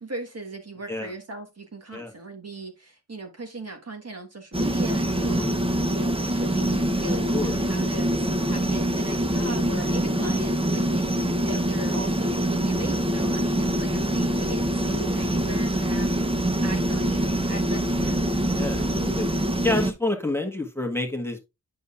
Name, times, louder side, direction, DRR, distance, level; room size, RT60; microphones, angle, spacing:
voice 1, 0.0-5.6 5.9-8.1 8.5-11.1 11.4-16.2 16.4-18.2, right 2 dB, 45° right, 1.5 m, -38 dB
sound 1, 4.5-19.9, right 1 dB, 15° right, 0.8 m, -24 dB
voice 2, 5.2-5.5 7.3-7.5 11.5-11.9 18.5-19.3 19.6-21.5, left 2 dB, 5° left, 1.4 m, -29 dB
9.0 x 5.7 x 2.5 m
wide cardioid pair, 105°, 36 cm